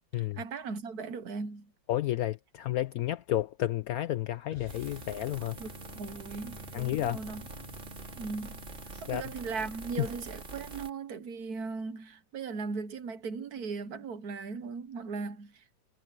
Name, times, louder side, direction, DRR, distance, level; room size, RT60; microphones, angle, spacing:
voice 1, 0.0-1.7 5.6-7.4 8.2-8.6 9.0-15.8, right 4 dB, 60° right, 1.5 m, -38 dB
voice 2, 1.9-5.6 6.7-7.2 8.9-9.2 10.0-10.1, left 13 dB, 70° left, 0.9 m, -31 dB
sound 1, 4.5-10.9, left 1 dB, 20° left, 7.1 m, -50 dB
sound 2, 4.7-10.9, right 3 dB, 45° right, 2.6 m, -46 dB
omnidirectional pair, 1.9 m